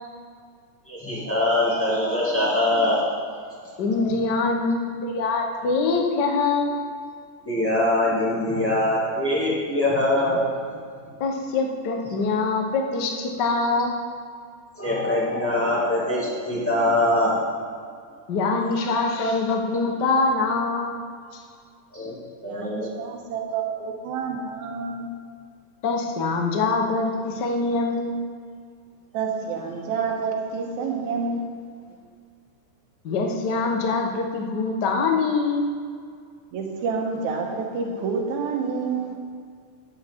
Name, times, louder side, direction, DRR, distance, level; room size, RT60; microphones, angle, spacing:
voice 1, 0.9-3.3 3.6-4.1 6.4-6.5 7.4-10.8 14.8-17.6 21.9-22.9, left 1 dB, 5° left, -7 dB, 1.7 m, -23 dB
voice 2, 3.8-6.9 11.2-14.0 18.3-21.0 25.8-28.2 33.0-35.7, left 3 dB, 75° left, 2 dB, 0.9 m, -24 dB
voice 3, 22.4-25.1 29.1-31.4 36.5-39.2, right 5 dB, 70° right, 1 dB, 2.5 m, -28 dB
12.5 x 9.6 x 3.6 m, 2.1 s
omnidirectional pair, 3.6 m